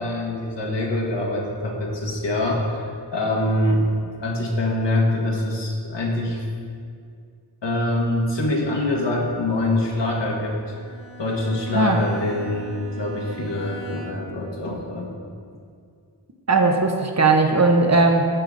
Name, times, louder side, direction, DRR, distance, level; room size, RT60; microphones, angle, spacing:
voice 1, 0.0-3.9 4.2-6.4 7.6-10.6 11.2-15.1, left 1 dB, 70° left, -1 dB, 1.7 m, -24 dB
Bowed string instrument, 10.4-14.5, right 4 dB, 50° left, 1.8 m, -40 dB
voice 2, 16.5-18.3, right 3 dB, 35° right, 3 dB, 0.9 m, -18 dB
13.5 x 5.0 x 3.9 m, 2.2 s
wide cardioid pair, 70°, 46 cm